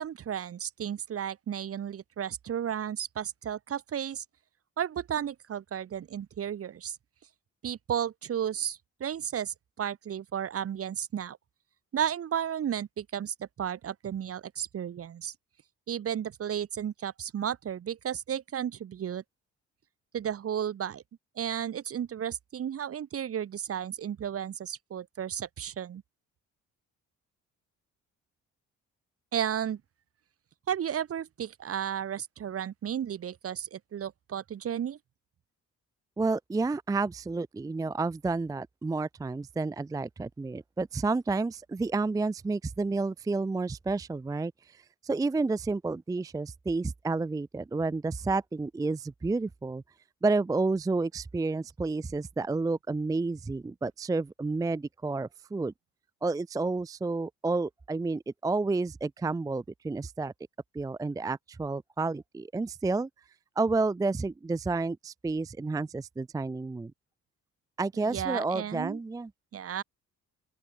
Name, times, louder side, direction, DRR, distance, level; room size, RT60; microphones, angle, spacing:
voice 1, 0.0-4.2 4.8-7.0 7.6-11.4 11.9-15.3 15.9-19.2 20.1-21.0 21.4-26.0 29.3-29.8 30.7-35.0 68.0-69.0 69.5-69.8, right 9 dB, 50° right, 1.2 m, -33 dB
voice 2, 36.2-49.8 50.2-55.7 56.2-60.3 60.7-63.1 63.6-66.9 67.8-69.3, right 3 dB, 10° right, 0.4 m, -30 dB
open air
cardioid pair, 90°, 30 cm